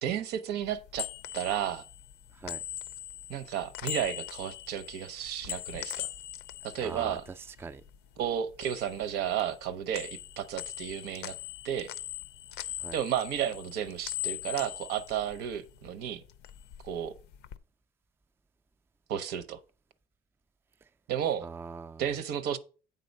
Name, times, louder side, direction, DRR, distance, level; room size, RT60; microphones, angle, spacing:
voice 1, 0.0-1.1 1.3-1.8 3.3-6.1 6.6-7.2 8.2-11.4 11.6-11.9 12.9-16.2 16.8-17.2 19.1-19.6 21.1-21.5 22.0-22.6, right 9 dB, 85° right, 0.8 m, -32 dB
sound 1, 0.6-8.0 8.3-9.7 9.9-15.9 16.2-17.6, left 12 dB, 85° left, 0.5 m, -41 dB
voice 2, 2.3-2.6 6.8-7.8 12.8-13.0 20.8-20.9 21.4-22.1, right 4 dB, 15° right, 0.3 m, -42 dB
8.3 x 3.8 x 5.3 m
cardioid pair, 110°, 17 cm